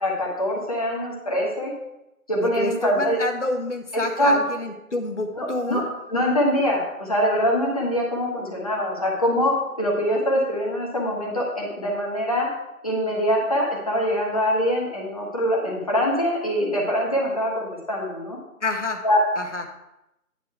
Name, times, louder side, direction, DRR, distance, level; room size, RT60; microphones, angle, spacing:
voice 1, 0.0-1.7 2.3-3.2 3.9-4.3 5.4-5.8 6.1-12.5 12.8-18.4 19.0-19.2, equal, 25° left, -2 dB, 1.3 m, -23 dB
voice 2, 2.5-5.8 18.6-19.0 19.4-19.6, left 2 dB, 50° left, 5 dB, 1.2 m, -28 dB
9.6 x 5.0 x 4.6 m, 0.89 s
figure-of-eight pair, 160°, 45 cm